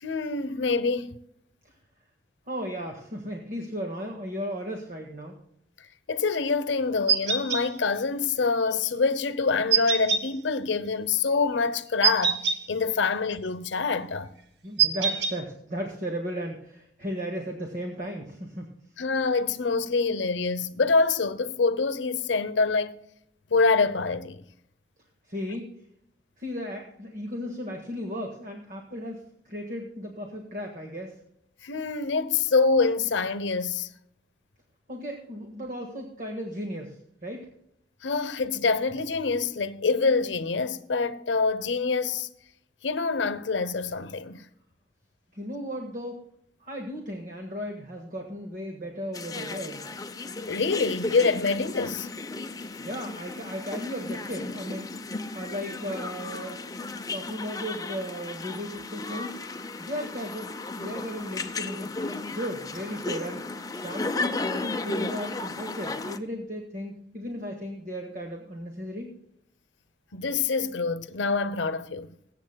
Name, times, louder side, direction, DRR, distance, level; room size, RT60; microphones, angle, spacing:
voice 1, 0.0-1.2 6.1-14.3 19.0-22.9 23.5-24.4 31.6-33.9 38.0-42.3 42.8-44.4 50.4-52.1 70.1-72.2, left 4 dB, 90° left, 0.7 m, -26 dB
voice 2, 2.5-5.4 14.6-18.7 25.2-25.7 26.4-31.2 34.9-37.5 45.3-46.2 46.6-49.9 52.8-56.6 57.1-59.4 59.8-61.9 62.3-69.1, equal, 45° right, 1.6 m, -35 dB
sound 1, 7.1-7.6 9.7-10.2 12.0-12.6 14.8-15.3, right 6 dB, 70° right, 1.2 m, -23 dB
sound 2, 49.1-66.2, left 3 dB, 20° left, 0.6 m, -35 dB
21.5 x 8.3 x 2.2 m
head